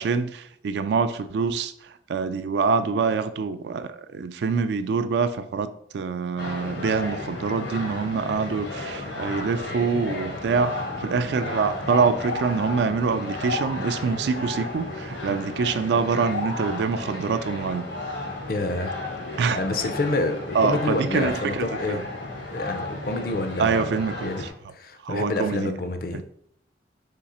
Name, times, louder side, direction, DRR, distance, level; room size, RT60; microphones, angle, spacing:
voice 1, 0.0-1.7 2.1-17.9 19.4-19.6 20.5-22.0 23.6-24.5 25.0-25.7 26.1-26.2, right 5 dB, 70° right, 0.3 m, -25 dB
sound 1, 6.4-24.5, left 2 dB, 85° left, 1.3 m, -33 dB
voice 2, 18.5-19.0 19.5-22.1 22.5-26.2, left 2 dB, 50° left, 0.5 m, -28 dB
3.7 x 3.2 x 4.2 m
head